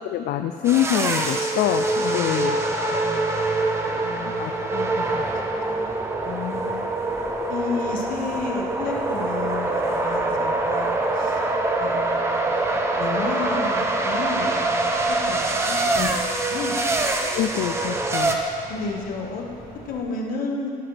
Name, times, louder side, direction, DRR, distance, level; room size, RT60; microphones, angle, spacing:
voice 1, 0.0-2.6 4.4-4.8 17.3-18.4, left 11 dB, 75° left, 8 dB, 0.5 m, -25 dB
sound 1, 0.6-18.3, right 2 dB, 15° right, 0.8 m, -24 dB
sound 2, 1.6-20.0, right 1 dB, 30° right, 3.4 m, -46 dB
voice 2, 2.0-5.3 5.7-6.0 6.2-6.8 7.5-11.4 11.8-16.9 18.7-19.4 19.8-20.7, left 4 dB, 60° left, 0 dB, 1.6 m, -32 dB
17.0 x 10.0 x 3.4 m, 2.3 s
cardioid pair, 170°, 16 cm